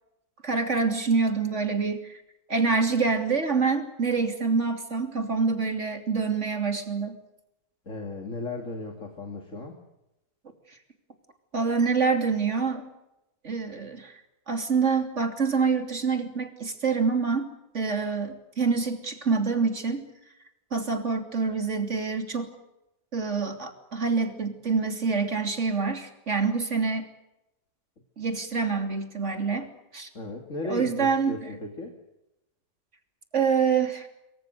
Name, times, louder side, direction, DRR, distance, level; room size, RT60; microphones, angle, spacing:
voice 1, 0.4-2.2 2.5-7.1 11.5-12.9 13.4-14.1 14.5-17.5 17.7-20.0 20.7-22.5 23.1-27.1 28.2-30.1 30.6-31.4 33.3-34.1, right 5 dB, 45° right, 6 dB, 3.3 m, -26 dB
voice 2, 7.9-9.8 30.1-32.0, left 2 dB, 50° left, 3 dB, 3.0 m, -36 dB
26.5 x 24.0 x 6.7 m, 0.91 s
omnidirectional pair, 1.7 m